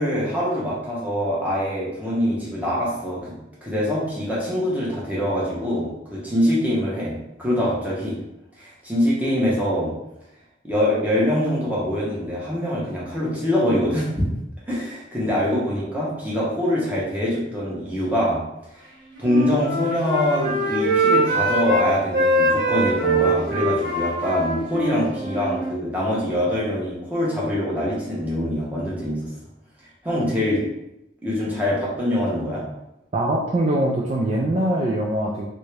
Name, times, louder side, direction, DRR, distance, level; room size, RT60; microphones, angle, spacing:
voice 1, 0.0-3.3 3.6-8.2 8.6-9.9 10.6-14.3 14.7-18.4 19.2-29.3 30.0-30.6 31.2-32.6, equal, 10° right, -7 dB, 0.9 m, -24 dB
Wind instrument woodwind instrument, 19.1-21.8 22.1-25.8, right 1 dB, 65° right, 1.2 m, -23 dB
voice 2, 33.1-35.5, right 1 dB, 35° right, -3 dB, 0.3 m, -22 dB
3.3 x 2.6 x 3.2 m, 0.87 s
head